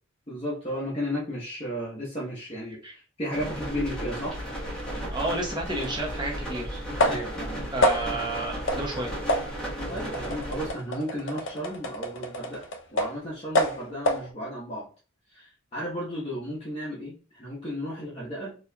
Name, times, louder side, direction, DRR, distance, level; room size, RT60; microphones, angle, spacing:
voice 1, 0.3-4.4 7.0-7.6 9.9-12.6 12.9-14.9 15.3-18.6, equal, 25° left, -7 dB, 1.0 m, -34 dB
sound 1, 3.3-10.7, right 1 dB, 5° left, 1.1 m, -34 dB
voice 2, 5.1-6.8 7.7-9.1, right 1 dB, 20° right, -2 dB, 0.9 m, -31 dB
sound 2, 5.8-5.9 7.0-7.4 7.8-8.3 8.7-8.9 9.3-13.2 13.5-14.3, left 1 dB, 60° left, 0.6 m, -27 dB
4.1 x 3.0 x 2.3 m, 0.36 s
head